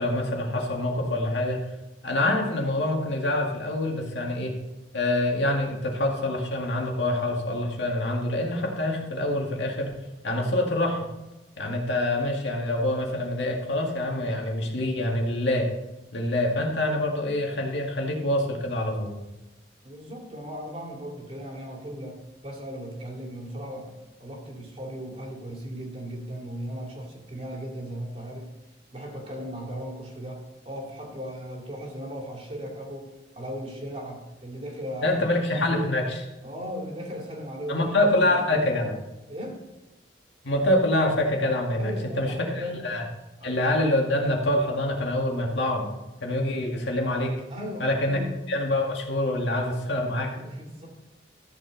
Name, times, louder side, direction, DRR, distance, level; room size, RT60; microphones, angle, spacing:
voice 1, 0.0-1.6 2.0-4.6 4.9-9.9 10.2-11.1 11.6-15.7 16.1-19.1 35.0-36.2 37.7-38.9 40.4-43.1 43.4-45.9 46.2-47.3 47.8-48.2 48.5-50.3, left 1 dB, 70° left, 0 dB, 2.0 m, -26 dB
voice 2, 19.8-28.5 28.9-35.9 36.4-37.9 38.2-38.6 39.3-39.6 41.7-42.9 43.4-43.5 47.5-48.3 48.6-48.8 49.8-49.9 50.3-50.9, equal, 35° right, 0 dB, 2.4 m, -37 dB
13.5 x 7.1 x 3.9 m, 1.0 s
head